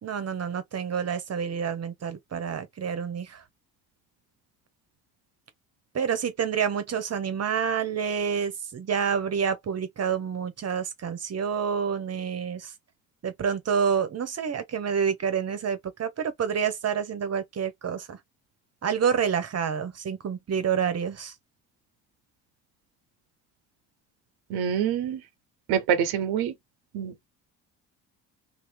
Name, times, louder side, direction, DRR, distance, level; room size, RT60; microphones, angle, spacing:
voice 1, 0.0-3.4 5.9-12.7 13.2-18.2 18.8-21.3, right 7 dB, 40° right, 1.1 m, -28 dB
voice 2, 24.5-25.2 25.7-26.5 26.9-27.3, right 8 dB, 70° right, 0.9 m, -26 dB
2.9 x 2.8 x 3.4 m
supercardioid pair, 70°, 39 cm